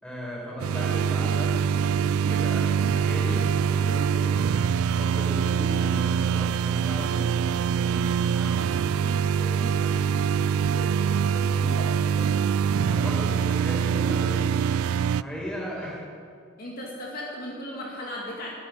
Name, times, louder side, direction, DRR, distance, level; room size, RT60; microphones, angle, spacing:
voice 1, 0.0-4.5 4.9-12.3 12.9-14.6 15.2-16.1, equal, 5° left, -5 dB, 5.1 m, -37 dB
sound 1, 0.6-15.2, right 7 dB, 90° right, 0.3 m, -24 dB
voice 2, 16.6-18.5, left 1 dB, 45° left, -4 dB, 2.2 m, -36 dB
13.5 x 9.0 x 10.0 m, 2.2 s
head